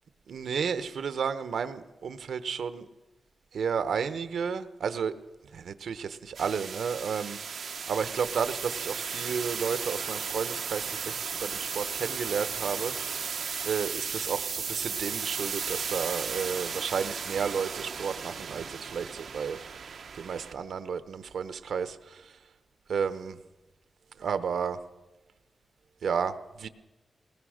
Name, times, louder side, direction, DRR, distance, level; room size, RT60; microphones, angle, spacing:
voice 1, 0.3-2.9 3.5-5.1 5.5-12.9 13.6-19.9 20.1-22.3 22.9-23.4 24.2-24.8 26.0-26.7, right 6 dB, 85° right, 12 dB, 1.0 m, -32 dB
sound 1, 6.3-20.5, right 6 dB, 65° right, 1.2 m, -35 dB
20.0 x 20.0 x 6.5 m, 1.1 s
wide cardioid pair, 175°, 0 cm